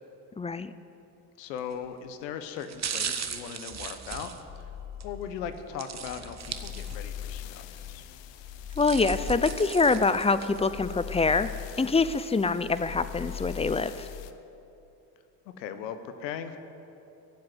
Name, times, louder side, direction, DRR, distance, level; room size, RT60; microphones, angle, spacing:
voice 1, 0.4-0.7 8.8-14.1, left 4 dB, 15° left, 13 dB, 0.6 m, -25 dB
voice 2, 1.4-4.6 5.0-8.0 15.6-16.6, left 8 dB, 85° left, 9 dB, 1.1 m, -38 dB
sound 1, 1.6-1.9 2.5-5.1 5.8-7.2 7.6-7.7 8.5-10.7 11.2-11.3, right 7 dB, 35° right, 1.1 m, -37 dB
sound 2, 4.5-14.3, left 10 dB, 65° left, 0.9 m, -41 dB
14.0 x 7.7 x 9.3 m, 2.8 s
hypercardioid pair, 65°, 48 cm